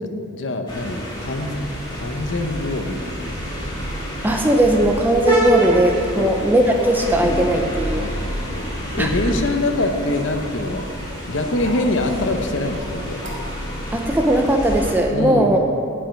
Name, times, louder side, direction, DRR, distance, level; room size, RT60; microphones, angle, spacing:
voice 1, 0.0-1.6 1.9-3.0 6.2-6.4 7.9-10.9 11.3-13.2 15.1-15.6, left 2 dB, 65° left, 6 dB, 0.8 m, -24 dB
sound 1, 0.7-14.9, right 1 dB, 25° left, 2.4 m, -28 dB
voice 2, 4.2-8.1 9.0-9.4 13.9-15.6, right 1 dB, 10° right, 2 dB, 0.5 m, -18 dB
sound 2, 4.3-4.4 5.6-5.8 6.6-7.1 8.0-8.7 10.4-10.6 11.4-11.9 12.8-12.9 13.2-13.6, equal, 60° right, 2.2 m, -36 dB
10.0 x 5.6 x 7.6 m, 2.6 s
head